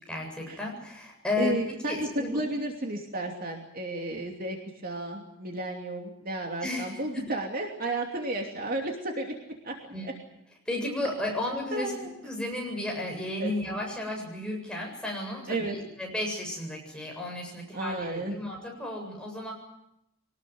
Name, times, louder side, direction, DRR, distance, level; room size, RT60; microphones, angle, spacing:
voice 1, 0.1-2.4 6.6-7.3 9.9-10.1 10.7-19.5, left 1 dB, 5° left, -1 dB, 7.7 m, -33 dB
voice 2, 1.4-4.6 4.8-10.1 11.7-12.1 13.4-13.5 15.5-15.7 17.7-18.4, right 1 dB, 45° right, 2 dB, 2.9 m, -32 dB
24.0 x 19.5 x 9.5 m, 0.83 s
head